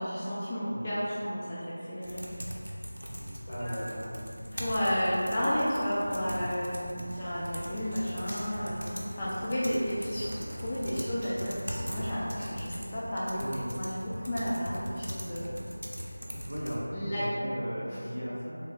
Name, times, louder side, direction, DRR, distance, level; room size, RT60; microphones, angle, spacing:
voice 1, 0.0-2.2 3.7-3.8 4.5-15.5 16.9-17.3 17.9-18.0, equal, 20° left, -10 dB, 0.4 m, -32 dB
sound 1, 2.0-16.8, equal, 85° right, 0.6 m, -40 dB
voice 2, 3.4-4.2 6.3-6.5 13.4-13.8 16.4-18.6, equal, 70° left, -8 dB, 1.2 m, -37 dB
Rain, 7.1-12.5, equal, 20° right, 0.7 m, -47 dB
3.3 x 2.0 x 3.7 m, 2.5 s
figure-of-eight pair, 170°, 0 cm